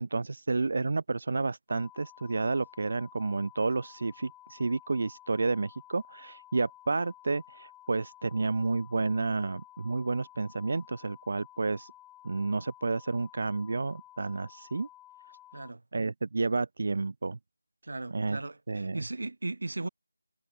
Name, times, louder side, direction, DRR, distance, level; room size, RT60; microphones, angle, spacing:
voice 1, 0.0-11.9 12.2-14.9 15.9-17.4 18.1-18.4 18.7-19.0, right 3 dB, 40° right, 0.6 m, -30 dB
sound 1, 1.7-15.7, left 13 dB, 5° left, 0.7 m, -54 dB
voice 2, 17.8-19.9, right 2 dB, 65° right, 1.5 m, -37 dB
figure-of-eight pair, 175°, 0 cm